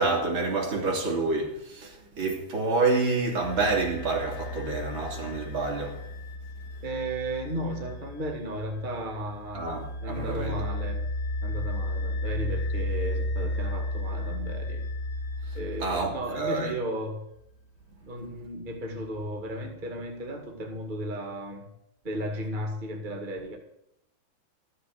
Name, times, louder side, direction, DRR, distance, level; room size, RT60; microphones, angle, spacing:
voice 1, 0.0-6.0 9.5-10.6 15.5-16.7, right 3 dB, 35° right, 3.3 m, -28 dB
sound 1, 3.4-16.5, left 1 dB, 40° left, 2.9 m, -33 dB
voice 2, 6.8-9.7 10.0-11.0 11.4-14.8 15.5-17.2 18.0-21.6 22.0-23.6, right 1 dB, 65° right, 0.5 m, -34 dB
13.5 x 8.2 x 7.8 m
omnidirectional pair, 4.7 m